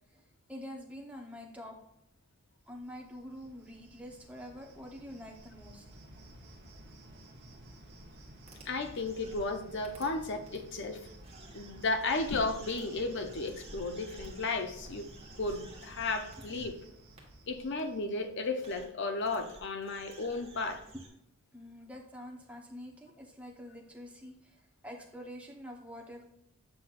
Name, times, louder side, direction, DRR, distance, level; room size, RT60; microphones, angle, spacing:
voice 1, 0.5-1.8 2.7-5.8 21.5-26.2, equal, 5° right, 1 dB, 0.9 m, -46 dB
Cricket, 2.7-18.4, right 1 dB, 50° right, 1.0 m, -53 dB
sound 1, 8.5-9.4 9.8-10.0 10.5-10.6 11.2-16.7 17.2-17.3 17.8-17.9 18.5-18.8 19.2-21.1, right 2 dB, 30° right, 1.4 m, -52 dB
voice 2, 8.7-11.0 11.5-15.1 15.4-16.8 17.5-20.8, left 3 dB, 55° left, 7 dB, 0.6 m, -34 dB
7.6 x 5.8 x 2.5 m, 0.76 s
head